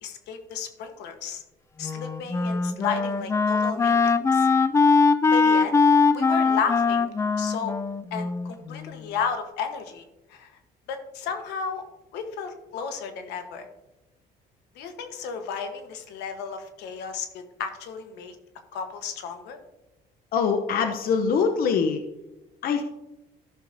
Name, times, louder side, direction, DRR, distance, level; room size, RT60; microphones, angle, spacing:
voice 1, 0.0-1.4 1.8-4.5 5.3-5.8 6.1-7.7 8.1-10.0 10.3-10.5 10.9-11.8 12.1-13.7 14.7-18.3 18.7-19.6, left 6 dB, 85° left, 7 dB, 1.2 m, -33 dB
Wind instrument woodwind instrument, 1.8-9.0, left 4 dB, 15° left, 0.3 m, -21 dB
voice 2, 20.3-22.0 22.6-22.8, left 6 dB, 60° left, 6 dB, 0.8 m, -23 dB
14.0 x 6.5 x 2.7 m, 0.97 s
cardioid pair, 110°, 17 cm